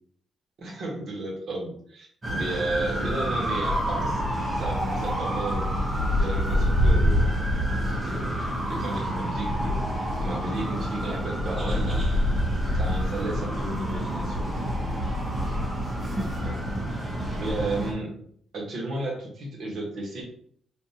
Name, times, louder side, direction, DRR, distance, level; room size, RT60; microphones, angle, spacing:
voice 1, 0.6-5.7 6.1-7.3 8.1-12.0 12.7-14.6 16.4-16.8 17.4-18.1 18.5-20.2, right 2 dB, 55° right, -1 dB, 1.1 m, -34 dB
sound 1, 2.2-17.9, equal, 20° right, 0.8 m, -27 dB
3.5 x 2.4 x 2.8 m, 0.63 s
cardioid pair, 140°, 0 cm